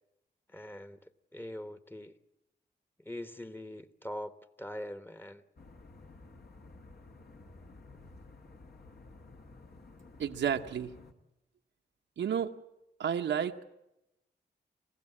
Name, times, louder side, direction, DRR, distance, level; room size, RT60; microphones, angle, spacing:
voice 1, 0.5-2.1 3.0-5.4, left 1 dB, 10° left, 1.2 m, -43 dB
sound 1, 5.6-11.1, left 3 dB, 60° left, 2.0 m, -53 dB
voice 2, 10.2-11.0 12.2-12.5 13.0-13.6, right 8 dB, 85° right, 1.1 m, -31 dB
29.0 x 15.5 x 8.5 m
cardioid pair, 60°, 18 cm